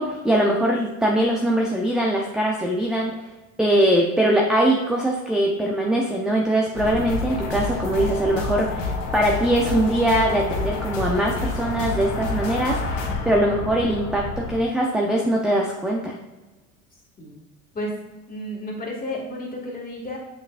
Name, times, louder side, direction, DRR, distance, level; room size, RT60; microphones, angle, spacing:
voice 1, 0.0-3.1 3.6-16.2, right 1 dB, ahead, -1 dB, 0.6 m, -22 dB
sound 1, 6.8-14.6, left 3 dB, 65° left, 1.6 m, -28 dB
voice 2, 18.3-20.2, left 1 dB, 20° left, -1 dB, 2.1 m, -32 dB
7.0 x 5.8 x 2.5 m, 1.1 s
hypercardioid pair, 90°, 39 cm